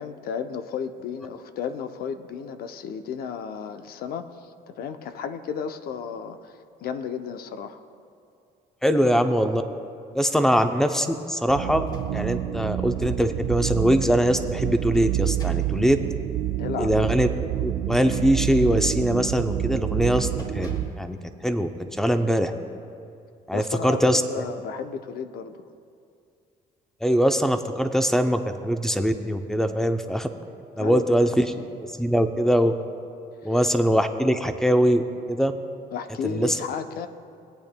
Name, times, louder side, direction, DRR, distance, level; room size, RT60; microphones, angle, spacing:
voice 1, 0.0-7.8 8.9-9.1 10.4-10.5 13.1-13.2 16.6-16.9 23.5-25.7 30.8-31.3 33.4-33.5 35.9-37.1, left 6 dB, 65° left, 9 dB, 0.6 m, -33 dB
voice 2, 8.8-9.6 10.1-16.0 16.8-17.3 17.6-20.7 21.0-21.2 21.4-21.7 22.0-22.5 23.5-24.4 27.0-30.3 30.8-31.5 31.8-32.7 33.4-35.0 35.3-35.5 36.2-36.6, equal, 5° left, 8 dB, 0.5 m, -22 dB
sound 1, 11.5-20.9, right 13 dB, 70° right, 0.4 m, -28 dB
sound 2, 11.7-12.5 12.9-13.0 14.5-15.8 17.8-18.7 19.2-19.5 19.8-20.0 20.4-21.1, left 2 dB, 25° left, 1.4 m, -46 dB
20.5 x 8.7 x 2.2 m, 2.5 s
cardioid pair, 110°, 17 cm